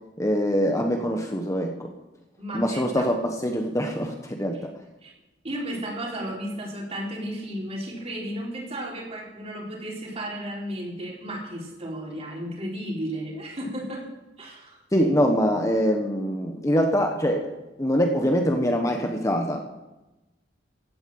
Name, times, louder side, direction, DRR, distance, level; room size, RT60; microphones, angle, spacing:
voice 1, 0.2-1.7 2.5-4.6 14.9-17.5 17.8-19.6, equal, 15° left, 3 dB, 1.3 m, -24 dB
voice 2, 2.4-3.1 4.5-4.6 5.0-5.1 5.4-14.0 14.4-14.8, equal, 35° right, -3 dB, 4.3 m, -34 dB
15.5 x 9.5 x 7.7 m, 1.0 s
head